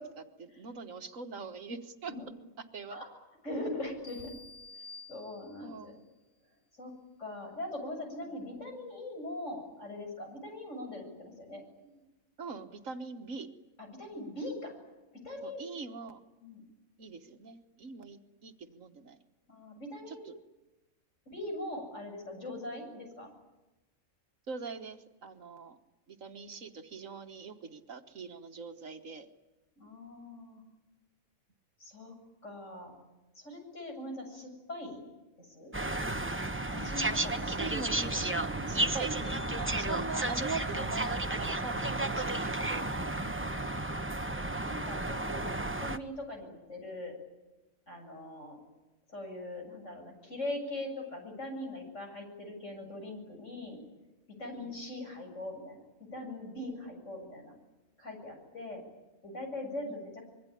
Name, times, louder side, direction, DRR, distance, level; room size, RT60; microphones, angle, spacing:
voice 1, 0.4-2.1 2.7-3.0 5.6-6.1 12.4-13.5 15.4-16.2 17.0-19.2 20.1-20.3 24.5-25.8 26.1-29.3 37.5-38.4 38.7-42.9 54.6-54.8 60.0-60.1, right 4 dB, 65° right, 7 dB, 1.7 m, -42 dB
voice 2, 3.4-4.3 5.1-5.9 6.7-6.9 7.2-12.0 13.8-14.7 15.2-15.6 16.4-16.6 19.5-20.2 21.3-23.3 29.8-30.6 31.8-32.1 32.4-32.9 33.4-35.0 35.4-35.7 36.7-37.7 43.0-43.6 44.6-45.5 45.8-47.1 47.9-48.6 49.1-53.8 54.4-55.8 56.1-57.5 58.0-58.8 59.2-60.2, left 1 dB, 55° left, 2 dB, 7.8 m, -41 dB
sound 1, 4.0-5.9, left 3 dB, 85° left, 5.0 m, -50 dB
sound 2, 35.7-46.0, right 2 dB, 10° right, 0.8 m, -32 dB
25.5 x 23.0 x 10.0 m, 1.1 s
omnidirectional pair, 1.5 m